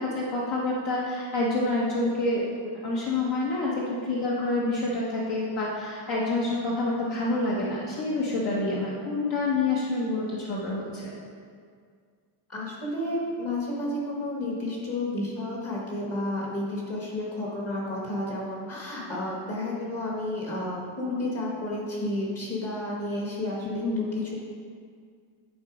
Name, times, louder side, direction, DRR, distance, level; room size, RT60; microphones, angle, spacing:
voice 1, 0.0-2.4 2.8-11.1 23.8-24.1, left 2 dB, 55° left, -5 dB, 1.1 m, -27 dB
voice 2, 12.5-24.4, left 1 dB, 30° left, -3 dB, 1.2 m, -31 dB
10.0 x 4.0 x 4.8 m, 2.1 s
cardioid pair, 170°, 50 cm